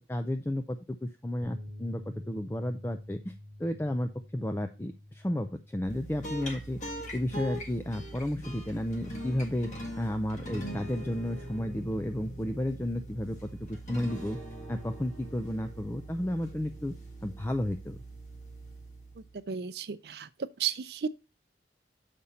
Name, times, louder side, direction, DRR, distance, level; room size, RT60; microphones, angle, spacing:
voice 1, 0.0-3.3 3.6-6.8 7.1-14.4 14.7-16.9 17.2-18.0, left 1 dB, 15° left, 0.4 m, -32 dB
sound 1, 1.4-7.7, left 1 dB, 50° right, 1.3 m, -49 dB
sound 2, 5.9-19.4, right 1 dB, 40° left, 1.6 m, -42 dB
voice 2, 19.3-21.1, right 7 dB, 65° right, 0.5 m, -34 dB
7.1 x 5.1 x 4.1 m
head